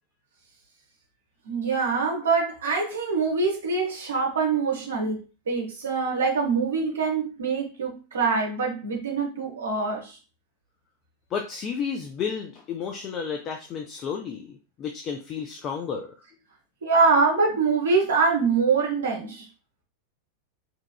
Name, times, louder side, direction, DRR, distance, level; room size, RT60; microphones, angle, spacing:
voice 1, 1.4-10.2 16.8-19.5, right 4 dB, 65° right, -1 dB, 0.6 m, -24 dB
voice 2, 11.3-16.1, left 6 dB, 30° left, 4 dB, 0.3 m, -32 dB
2.8 x 2.3 x 2.2 m, 0.33 s
figure-of-eight pair, 90°, 0 cm